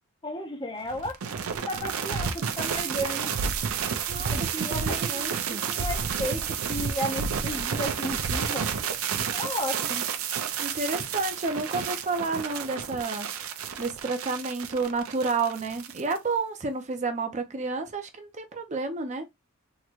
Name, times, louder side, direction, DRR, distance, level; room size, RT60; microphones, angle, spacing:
voice 1, 0.2-1.2 1.5-3.3 4.2-5.2 5.5-8.7 9.3-10.1, equal, 20° left, 0.5 m, -34 dB
Long Woosh Glitchy Fx, 0.9-16.2, right 6 dB, 90° right, 0.5 m, -30 dB
voice 2, 4.1-5.6 10.6-13.3 13.8-19.3, right 3 dB, 35° right, 0.5 m, -30 dB
3.7 x 2.1 x 3.0 m
head